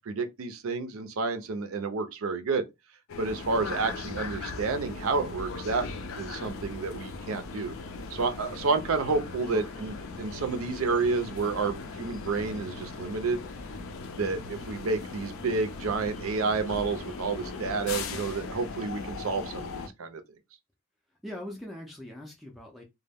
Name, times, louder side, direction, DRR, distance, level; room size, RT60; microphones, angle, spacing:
voice 1, 0.1-2.6 3.2-5.9 6.2-7.7 8.1-13.4 14.2-20.2, right 4 dB, 70° right, 0.5 m, -30 dB
sound 1, 3.1-19.9, left 4 dB, 65° left, 0.4 m, -39 dB
voice 2, 9.5-10.0 21.2-22.8, left 1 dB, ahead, 0.4 m, -42 dB
2.2 x 2.0 x 3.4 m
head